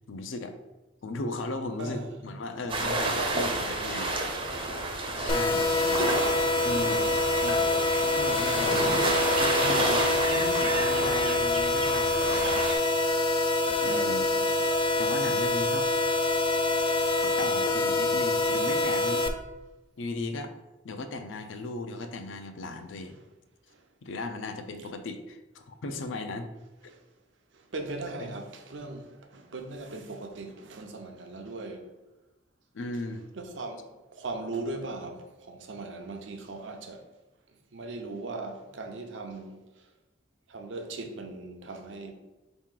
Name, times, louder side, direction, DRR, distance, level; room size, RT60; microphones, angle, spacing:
voice 1, 0.1-0.5 1.0-4.1 5.2-6.0 6.6-7.7 8.1-8.9 9.3-12.7 13.8-14.3 15.0-15.9 17.2-19.2 20.0-20.5 20.8-23.2 24.0-26.5 28.2-28.4 32.7-33.3, left 2 dB, 80° left, 0.5 m, -36 dB
sound 1, 2.7-12.8, right 2 dB, 30° right, 0.6 m, -30 dB
sound 2, 5.3-19.3, left 2 dB, 25° left, 0.3 m, -26 dB
voice 2, 5.8-6.3 13.9-14.5 16.8-17.0 27.7-29.1 29.3-31.8 33.4-33.8 34.1-37.0 37.7-39.6 40.5-42.1, right 2 dB, 70° right, 0.7 m, -39 dB
4.4 x 3.0 x 3.8 m
head